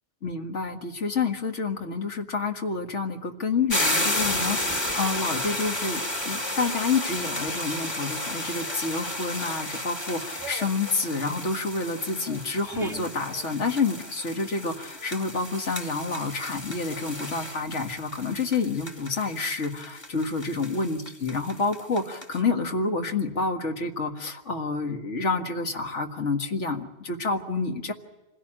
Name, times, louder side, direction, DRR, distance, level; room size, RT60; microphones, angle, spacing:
voice 1, 0.2-27.9, left 4 dB, 80° left, 4 dB, 2.1 m, -28 dB
sound 1, 3.7-22.4, left 1 dB, 20° left, 1.8 m, -32 dB
sound 2, 10.4-14.4 14.6-16.3 16.7-17.6, right 2 dB, 5° right, 0.9 m, -44 dB
26.0 x 17.0 x 8.8 m, 1.2 s
omnidirectional pair, 1.2 m